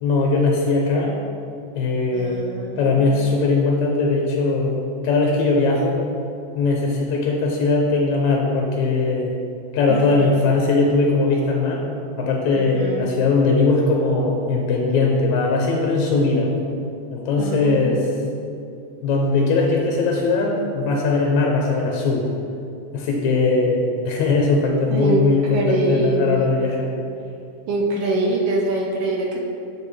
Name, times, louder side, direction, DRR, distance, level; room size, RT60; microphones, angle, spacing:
voice 1, 0.0-1.2 1.8-2.4 2.8-4.8 5.0-6.0 6.6-9.3 9.7-11.9 12.2-16.5 17.1-18.1 19.0-22.3 22.9-26.9, left 3 dB, 80° left, -1 dB, 2.0 m, -20 dB
voice 2, 2.1-3.1 9.9-10.3 12.6-13.1 17.4-18.0 24.9-25.2 25.5-26.5 27.7-29.4, right 2 dB, 75° right, -1 dB, 1.4 m, -24 dB
7.4 x 4.8 x 3.2 m, 2.6 s
omnidirectional pair, 3.3 m